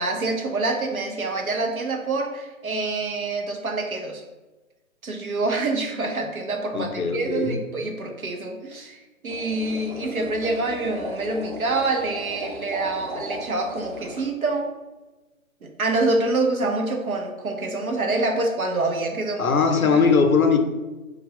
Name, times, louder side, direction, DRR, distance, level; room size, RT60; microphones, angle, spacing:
voice 1, 0.0-4.2 5.0-14.7 15.6-20.0, right 2 dB, 80° right, 3 dB, 0.8 m, -26 dB
voice 2, 6.7-7.6 19.4-20.6, left 5 dB, 80° left, 6 dB, 0.6 m, -20 dB
sound 1, 9.3-14.3, equal, 35° right, 0.9 m, -36 dB
3.3 x 2.3 x 3.6 m, 1.2 s
figure-of-eight pair, 140°, 42 cm